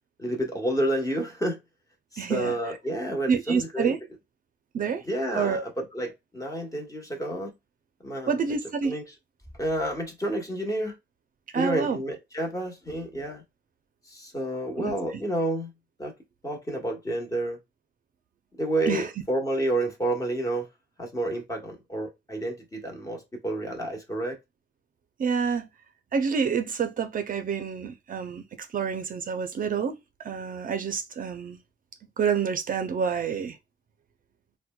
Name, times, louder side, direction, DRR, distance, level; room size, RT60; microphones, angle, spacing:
voice 1, 0.2-1.6 2.1-3.9 5.0-7.5 8.0-8.3 8.8-9.0 9.6-11.0 11.5-13.4 14.1-15.7 16.0-16.1 16.4-17.6 18.6-20.7 21.0-24.4, right 1 dB, 20° left, 1.2 m, -30 dB
voice 2, 2.2-2.8 3.3-4.0 4.7-5.0 5.3-5.6 8.3-9.0 11.5-12.0 14.8-14.9 18.9-19.1 25.2-25.7 26.1-31.6 32.2-33.6, right 6 dB, 50° right, 0.5 m, -28 dB
4.1 x 2.2 x 2.2 m
cardioid pair, 95°, 19 cm